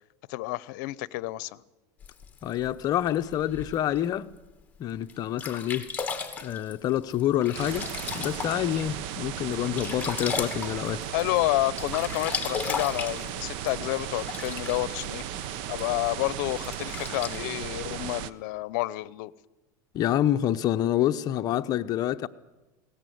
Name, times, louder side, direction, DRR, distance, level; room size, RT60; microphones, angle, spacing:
voice 1, 0.3-1.6 11.1-19.3, left 19 dB, 70° left, 0.8 m, -30 dB
Sink (filling or washing), 2.0-4.0 4.6-4.7 5.1-5.2 5.4-8.9 9.3-11.4 11.6-15.0 15.8-15.9 16.6-17.4, left 6 dB, 15° left, 2.5 m, -35 dB
voice 2, 2.4-4.3 4.8-5.9 6.4-11.0 19.9-22.3, left 12 dB, 40° left, 0.9 m, -27 dB
sound 1, 7.5-18.3, right 10 dB, 60° right, 1.0 m, -36 dB
22.0 x 17.5 x 9.5 m
supercardioid pair, 140°, 10 cm